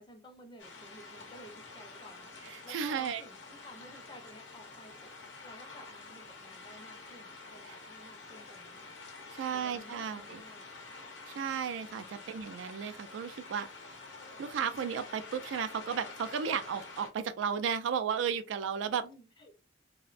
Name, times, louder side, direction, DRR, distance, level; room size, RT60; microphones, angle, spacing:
voice 1, 0.0-2.3 2.6-5.1 5.4-9.0 9.5-10.7 19.0-19.6, equal, 25° left, 0.5 m, -53 dB
sound 1, 0.6-17.1, left 3 dB, 90° left, 0.7 m, -48 dB
voice 2, 2.5-3.2 7.7-7.8 9.3-10.4 11.3-13.7 14.4-19.0, right 7 dB, 90° right, 0.3 m, -34 dB
2.5 x 2.1 x 2.4 m
head